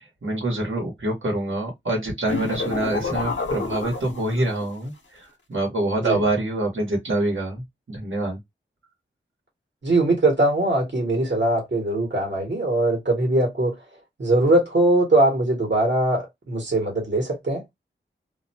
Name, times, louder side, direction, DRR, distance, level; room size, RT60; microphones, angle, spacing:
voice 1, 0.2-8.4, right 2 dB, 75° right, 1.2 m, -26 dB
sound 1, 2.3-4.7, left 3 dB, 65° left, 0.7 m, -29 dB
voice 2, 9.8-13.7 14.2-17.6, right 2 dB, 60° right, 1.2 m, -21 dB
2.5 x 2.2 x 2.7 m
wide cardioid pair, 70°, 20 cm